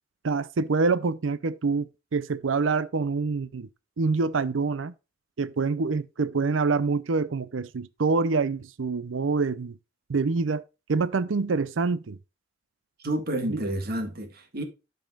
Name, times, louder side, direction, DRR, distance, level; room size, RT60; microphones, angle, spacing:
voice 1, 0.2-3.7 4.0-4.9 5.4-9.8 10.1-10.6 10.9-12.2 13.5-13.6, right 4 dB, 75° right, 0.6 m, -26 dB
voice 2, 13.0-14.6, right 1 dB, 50° right, 1.7 m, -30 dB
13.0 x 5.3 x 2.3 m
head